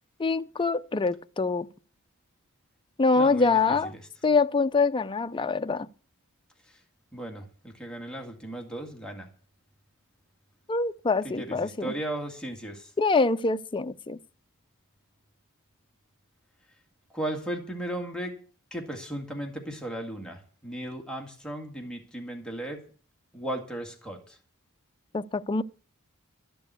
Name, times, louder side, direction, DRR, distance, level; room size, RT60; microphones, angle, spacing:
voice 1, 0.2-1.7 3.0-3.9 4.2-5.9 10.7-11.9 13.0-14.2 25.1-25.6, left 4 dB, 20° left, 0.5 m, -25 dB
voice 2, 3.2-3.8 7.1-9.3 11.4-12.9 17.1-18.4 18.7-22.8 23.3-24.4, right 1 dB, 5° left, 2.0 m, -36 dB
13.0 x 7.0 x 8.2 m
head